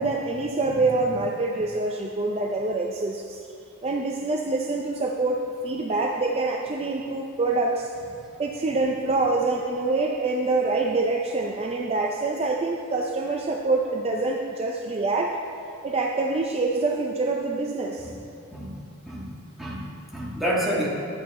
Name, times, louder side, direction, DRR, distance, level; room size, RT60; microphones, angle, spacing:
voice 1, 0.0-3.4 3.8-7.9 8.4-15.4 15.8-18.1, right 3 dB, 30° right, 0 dB, 0.5 m, -25 dB
voice 2, 19.6-20.9, equal, ahead, -6 dB, 1.7 m, -29 dB
11.0 x 8.2 x 4.2 m, 2.6 s
head